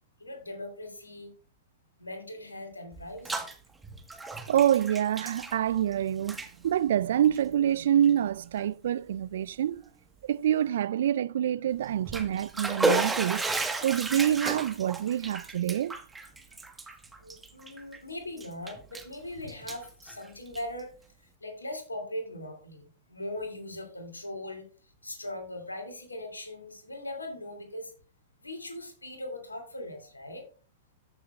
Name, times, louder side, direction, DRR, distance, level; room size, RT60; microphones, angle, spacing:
voice 1, 0.2-1.3 2.0-3.5 17.2-20.9 21.2-27.9 28.4-30.5, left 1 dB, 90° left, 2.5 m, -40 dB
Bathtub (filling or washing), 2.9-3.5 3.8-5.9 6.2-6.5 7.2-7.4 8.0-8.1 8.6-8.7 11.8-18.0 18.4-19.2 19.5-20.8, right 3 dB, 10° right, 1.3 m, -33 dB
voice 2, 4.5-9.8 10.2-13.5 13.8-16.0, right 10 dB, 65° right, 0.3 m, -26 dB
14.0 x 6.6 x 2.4 m
figure-of-eight pair, 105°, 0 cm